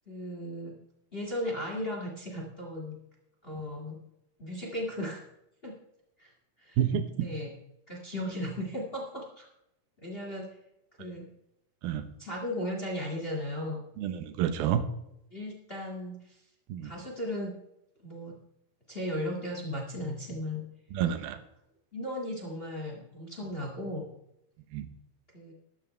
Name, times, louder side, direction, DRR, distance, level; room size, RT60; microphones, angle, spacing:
voice 1, 0.1-0.7 1.1-3.0 3.4-4.0 4.4-5.2 5.6-5.7 6.2-6.3 6.6-6.8 7.2-7.5 7.9-9.5 10.0-10.5 11.0-11.3 12.2-13.8 15.3-16.4 16.8-17.5 18.0-18.3 18.9-20.6 21.9-24.0 25.3-25.5, left 1 dB, 40° left, 0 dB, 0.8 m, -36 dB
voice 2, 6.8-7.3 11.8-12.1 14.0-14.8 16.7-16.9 20.9-21.4 24.7-24.9, right 9 dB, 75° right, 10 dB, 2.7 m, -29 dB
13.0 x 12.5 x 3.3 m, 0.83 s
omnidirectional pair, 4.7 m